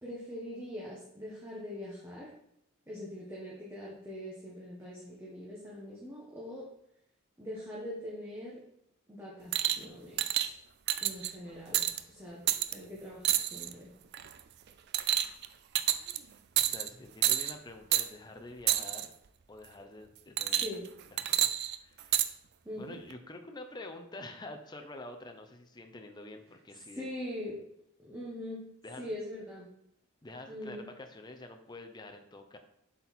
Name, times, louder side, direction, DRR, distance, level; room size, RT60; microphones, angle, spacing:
voice 1, 0.0-2.3 2.9-6.7 7.4-8.6 9.1-10.5 11.0-13.9 20.4-20.9 22.6-23.0 26.9-27.6 28.0-28.7 29.0-29.7 30.5-30.8, left 1 dB, 10° right, -5 dB, 1.2 m, -42 dB
sound 1, 9.5-9.8 10.2-10.5 10.9-11.3 11.7-12.0 12.5-12.7 13.2-13.7 14.1-14.4 14.9-15.5 15.8-16.2 16.6-16.9 17.2-17.5 17.9-18.1 18.7-19.1 20.4-20.9 21.2-22.3 23.1-23.2, right 13 dB, 50° right, 0.4 m, -28 dB
voice 2, 16.6-19.1 19.5-20.7 21.2-22.3 22.7-27.1 28.8-29.1 30.2-32.6, left 2 dB, 20° left, 5 dB, 0.6 m, -47 dB
7.7 x 4.4 x 4.2 m, 0.76 s
head